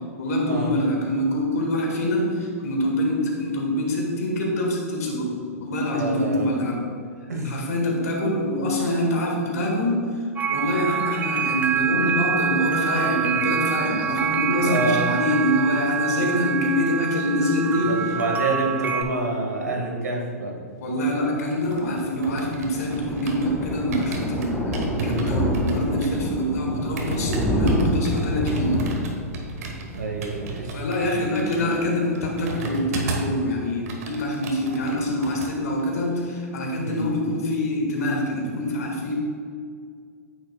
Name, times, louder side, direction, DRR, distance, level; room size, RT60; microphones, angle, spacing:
voice 1, 0.2-5.3 5.6-6.8 7.4-10.0 10.5-17.9 20.8-28.8 30.7-39.1, left 1 dB, 75° left, 0 dB, 1.7 m, -25 dB
voice 2, 5.9-6.6 7.3-7.6 8.8-9.1 14.6-15.1 17.7-20.6 24.9-25.4 27.0-27.2 29.9-30.8 31.6-32.0 36.8-37.1, right 2 dB, 90° right, 0 dB, 1.5 m, -28 dB
sound 1, 10.4-19.0, right 8 dB, 20° right, 0.6 m, -26 dB
sound 2, 21.3-23.6 23.9-33.4 33.7-35.5 35.8-36.1, right 3 dB, 70° right, 1.3 m, -35 dB
Thunder, 21.9-31.3 31.7-31.9 32.2-32.3 32.5-32.6, equal, 5° left, 1.6 m, -28 dB
9.2 x 6.5 x 2.3 m, 2.2 s
hypercardioid pair, 115°, 9 cm